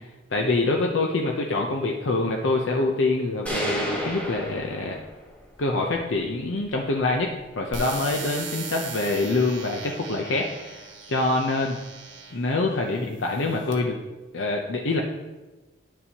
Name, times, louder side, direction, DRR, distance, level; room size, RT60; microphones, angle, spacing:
voice 1, 0.3-5.0 5.6-11.8 12.3-14.0 14.3-15.0, left 2 dB, 80° left, 1 dB, 0.7 m, -25 dB
sound 1, 3.5-5.4, equal, 5° left, 1.5 m, -31 dB
sound 2, 7.7-12.5 13.2-13.7, right 4 dB, 75° right, 1.4 m, -38 dB
10.5 x 7.0 x 2.9 m, 1.1 s
head